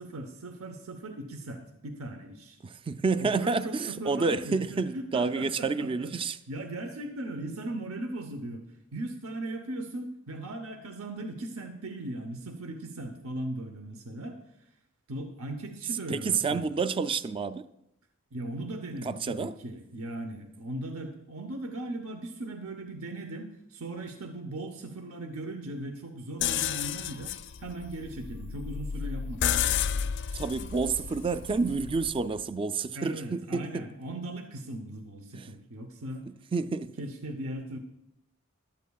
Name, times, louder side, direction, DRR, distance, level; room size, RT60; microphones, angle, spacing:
voice 1, 0.0-2.6 3.2-6.1 6.5-8.6 8.9-14.4 15.1-16.8 18.3-27.3 27.6-30.0 32.9-36.3 37.0-37.8, right 1 dB, 75° right, 0.9 m, -38 dB
voice 2, 2.6-6.4 16.1-17.6 19.0-19.5 30.3-33.8 35.3-35.5 36.5-36.9, right 4 dB, 25° right, 0.3 m, -29 dB
sound 1, 26.4-32.2, left 8 dB, 55° left, 0.4 m, -32 dB
15.5 x 12.0 x 2.4 m
head